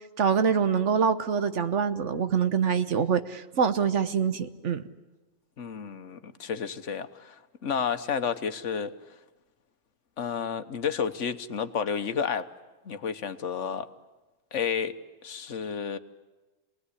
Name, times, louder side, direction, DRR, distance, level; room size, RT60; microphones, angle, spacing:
voice 1, 0.2-4.8, right 6 dB, 70° right, 1.4 m, -25 dB
voice 2, 5.6-8.9 10.2-12.5 12.8-13.9 14.5-14.9 15.2-16.0, left 7 dB, 70° left, 1.4 m, -31 dB
27.5 x 19.5 x 9.9 m
omnidirectional pair, 1.3 m